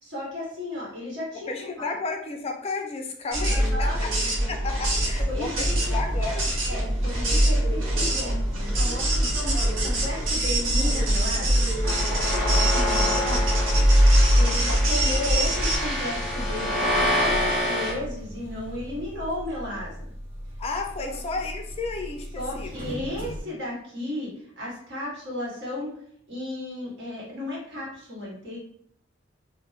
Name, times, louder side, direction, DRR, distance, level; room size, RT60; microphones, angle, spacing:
voice 1, 0.0-1.9 3.5-4.0 5.3-5.9 6.6-9.3 9.8-11.6 12.4-13.5 14.4-20.1 21.0-21.2 22.3-25.9 26.3-28.6, left 1 dB, 60° right, -5 dB, 1.0 m, -34 dB
voice 2, 1.5-4.1 4.5-6.5 20.6-22.7, left 3 dB, 30° left, 3 dB, 0.4 m, -32 dB
sound 1, 3.3-15.8, right 1 dB, 90° right, 0.6 m, -23 dB
sound 2, 4.8-23.4, equal, 30° right, 0.8 m, -36 dB
sound 3, 11.8-17.9, left 1 dB, ahead, 0.8 m, -28 dB
2.6 x 2.0 x 2.3 m, 0.65 s
head